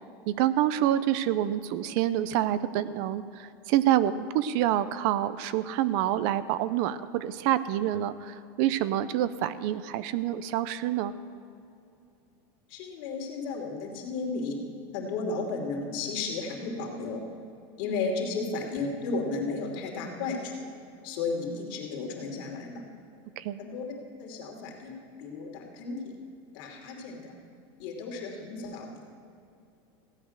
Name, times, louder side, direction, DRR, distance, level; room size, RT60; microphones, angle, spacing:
voice 1, 0.3-11.1 23.4-23.6, right 12 dB, 55° right, 15 dB, 0.6 m, -27 dB
voice 2, 12.7-14.6 14.9-17.2 17.8-20.5 21.0-22.8 23.6-23.9 24.2-24.9 25.2-26.1 26.5-27.3 27.8-29.0, left 4 dB, 60° left, 0 dB, 2.9 m, -33 dB
16.0 x 8.8 x 6.5 m, 2.6 s
supercardioid pair, 155°, 13 cm